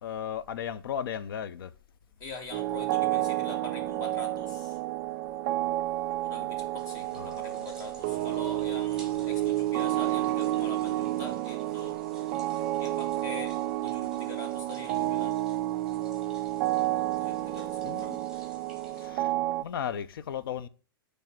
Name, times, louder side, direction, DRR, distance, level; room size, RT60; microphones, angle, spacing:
voice 1, 0.0-1.7 7.1-7.6 8.2-8.3 17.8-18.2 19.0-20.7, left 8 dB, 70° left, 0.6 m, -36 dB
voice 2, 2.2-4.8 6.2-12.0 12.5-15.4 17.2-18.1, left 3 dB, 30° left, 1.8 m, -44 dB
sound 1, 2.5-19.6, right 15 dB, 40° right, 0.3 m, -30 dB
sound 2, 6.8-19.1, right 2 dB, 5° right, 2.0 m, -55 dB
9.3 x 3.4 x 5.9 m
hypercardioid pair, 130°, 12 cm